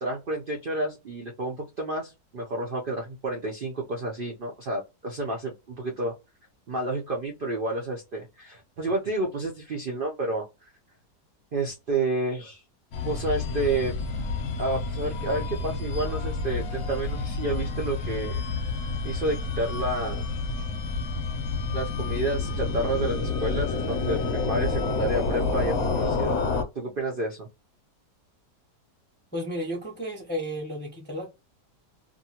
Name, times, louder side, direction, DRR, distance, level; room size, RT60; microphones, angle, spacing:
voice 1, 0.0-6.1 6.7-10.4 11.5-12.6 13.0-14.0 14.6-18.4 19.0-20.2 21.7-26.4 26.7-27.5, right 2 dB, 65° right, 0.5 m, -30 dB
sound 1, 12.9-26.6, left 3 dB, 60° left, 0.8 m, -29 dB
voice 2, 29.3-31.3, equal, 10° left, 0.5 m, -33 dB
2.6 x 2.6 x 2.8 m
omnidirectional pair, 1.9 m